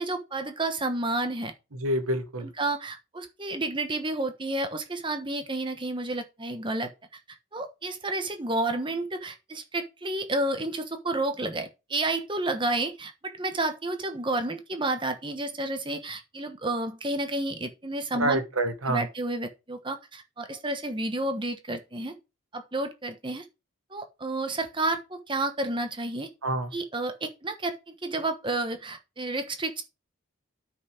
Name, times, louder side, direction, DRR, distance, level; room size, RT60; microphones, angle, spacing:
voice 1, 0.0-1.5 2.4-6.9 7.5-18.4 18.9-22.1 22.5-23.4 23.9-26.3 26.7-27.7 28.0-29.8, right 2 dB, 25° right, 1.2 m, -30 dB
voice 2, 1.7-2.5 18.2-19.0 26.4-26.7, right 1 dB, 90° right, 1.7 m, -27 dB
9.3 x 5.7 x 5.0 m
head